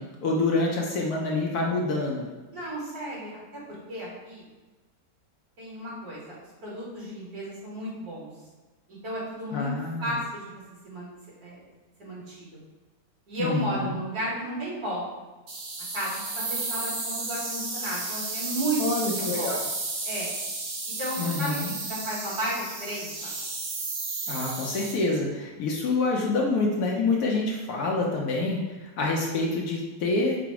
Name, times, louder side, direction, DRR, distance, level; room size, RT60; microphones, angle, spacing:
voice 1, 0.0-2.3 9.5-10.1 13.4-14.0 18.8-19.6 21.2-21.7 24.3-30.4, left 3 dB, 70° left, -1 dB, 1.1 m, -27 dB
voice 2, 2.5-3.4 3.9-4.4 5.6-8.3 8.9-9.7 10.0-10.5 10.8-11.1 11.4-11.6 12.0-12.6 13.3-15.0 15.9-18.8 19.1-19.5 20.0-20.3 21.0-23.3, right 1 dB, 60° right, -7 dB, 2.0 m, -33 dB
sound 1, 15.5-24.9, right 3 dB, 90° right, 1.7 m, -33 dB
4.9 x 2.0 x 4.6 m, 1.2 s
omnidirectional pair, 1.9 m